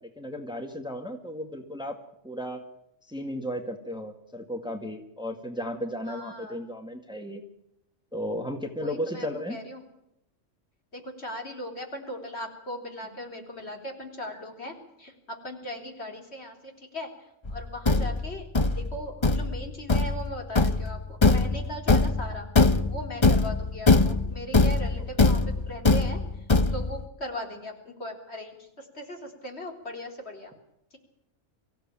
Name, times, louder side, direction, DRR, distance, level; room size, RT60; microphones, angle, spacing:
voice 1, 0.0-2.6 3.1-7.4 8.1-9.6 18.0-18.1 25.0-25.1, equal, 5° right, 5 dB, 1.9 m, -35 dB
voice 2, 6.1-6.6 8.8-9.8 10.9-17.1 17.5-18.5 18.8-22.5 22.9-26.2 26.7-30.5, equal, 55° left, 2 dB, 3.9 m, -38 dB
Thump thud, 17.5-27.0, left 3 dB, 25° left, 0.8 m, -22 dB
24.5 x 15.5 x 8.9 m, 0.80 s
omnidirectional pair, 1.3 m